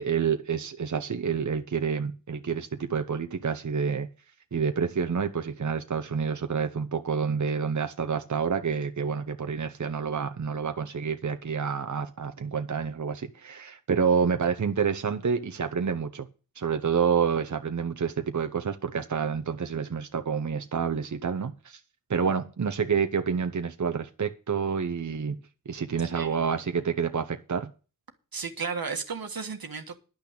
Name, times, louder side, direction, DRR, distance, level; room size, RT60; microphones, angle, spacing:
voice 1, 0.0-4.1 4.5-16.3 16.6-21.8 22.1-27.7, right 6 dB, 55° right, 0.9 m, -28 dB
voice 2, 26.1-26.6 28.3-30.0, right 5 dB, 85° right, 1.6 m, -34 dB
10.5 x 6.0 x 8.6 m
wide cardioid pair, 50°, 35 cm